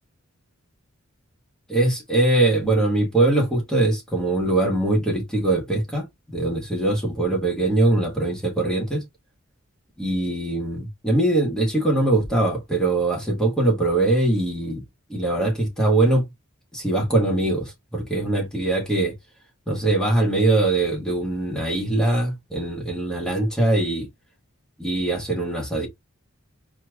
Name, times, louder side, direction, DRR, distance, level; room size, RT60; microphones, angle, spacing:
voice 1, 1.7-9.0 10.0-14.8 15.1-16.2 16.7-19.1 19.7-24.1 24.8-25.9, right 2 dB, 5° left, 1.6 m, -22 dB
4.3 x 3.2 x 2.4 m
head